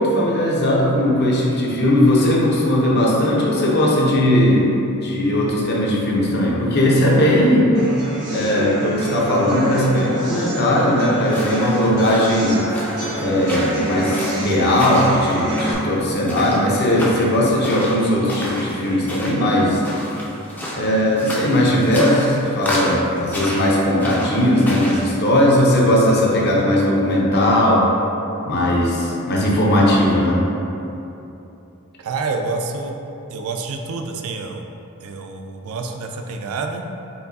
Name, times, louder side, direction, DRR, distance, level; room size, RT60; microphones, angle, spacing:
voice 1, 0.0-4.7 5.0-7.8 8.3-12.6 13.2-19.8 20.7-27.9 28.5-30.4, left 1 dB, 45° left, -3 dB, 0.6 m, -18 dB
sound 1, 7.7-15.7, right 1 dB, 85° right, 1.3 m, -27 dB
sound 2, 11.2-25.1, equal, 5° left, 0.4 m, -31 dB
voice 2, 32.0-33.0 33.3-34.6 35.0-36.8, right 3 dB, 70° right, 4 dB, 0.3 m, -28 dB
4.5 x 3.2 x 2.7 m, 2.9 s
head